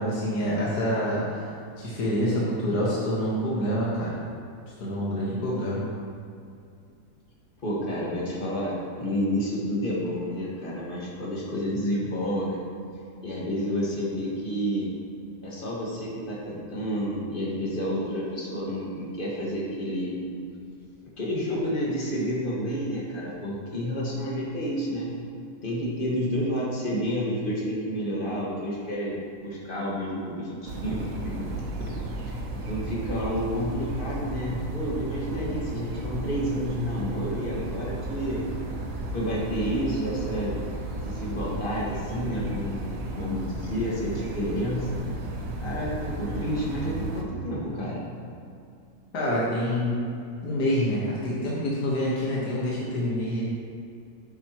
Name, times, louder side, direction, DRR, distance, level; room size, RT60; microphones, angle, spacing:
voice 1, 0.0-1.5 1.8-4.2 4.8-5.9 49.1-50.0 50.4-53.4, equal, 70° left, -6 dB, 2.0 m, -27 dB
voice 2, 7.6-12.6 13.2-14.9 15.4-20.2 21.2-25.1 25.6-29.2 29.4-31.5 31.9-32.0 32.2-32.4 32.7-38.4 39.1-40.6 41.0-45.0 45.6-48.1, equal, 30° left, -5 dB, 1.8 m, -30 dB
sound 1, 30.7-47.2, right 2 dB, 60° right, 1.3 m, -34 dB
9.1 x 8.9 x 3.0 m, 2.5 s
omnidirectional pair, 1.7 m